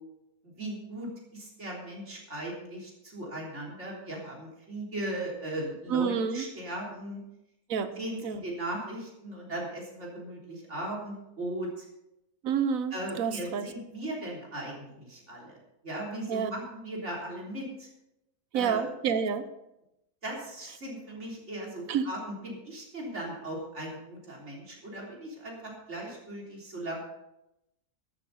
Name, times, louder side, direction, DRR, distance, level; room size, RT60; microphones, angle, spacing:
voice 1, 0.4-7.2 8.0-11.9 12.9-15.6 15.8-17.9 18.5-18.9 20.2-27.0, right 1 dB, 50° right, -3 dB, 3.9 m, -38 dB
voice 2, 5.9-6.4 7.7-7.9 8.2-8.4 12.4-13.7 16.3-16.5 18.5-19.5 21.9-22.1, right 7 dB, 65° right, 10 dB, 1.3 m, -28 dB
13.5 x 11.5 x 4.1 m, 0.87 s
omnidirectional pair, 1.6 m